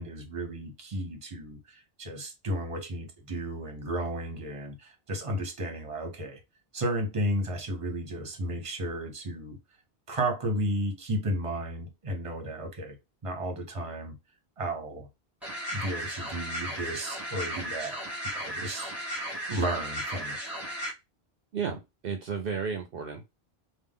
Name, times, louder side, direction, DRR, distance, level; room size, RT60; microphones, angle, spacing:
voice 1, 0.0-6.4 6.7-9.6 10.1-13.0 13.2-14.2 14.6-15.1 15.7-18.0 18.3-18.9 19.5-20.4, right 1 dB, 35° right, 1.0 m, -33 dB
sound 1, 15.4-20.9, equal, ahead, 1.7 m, -35 dB
voice 2, 21.5-23.3, right 6 dB, 65° right, 0.8 m, -33 dB
3.6 x 2.4 x 3.6 m
omnidirectional pair, 1.0 m